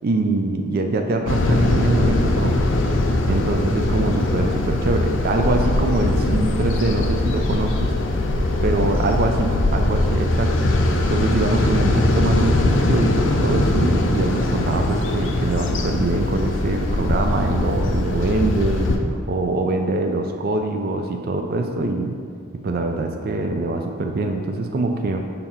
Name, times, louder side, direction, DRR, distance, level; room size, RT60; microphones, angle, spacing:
voice 1, 0.0-2.6 3.3-7.9 8.6-10.5 11.1-13.1 13.4-22.2 22.6-25.2, right 2 dB, 55° right, 4 dB, 0.4 m, -23 dB
sound 1, 1.3-19.0, left 2 dB, 85° left, 0.5 m, -21 dB
6.8 x 2.8 x 5.5 m, 2.2 s
head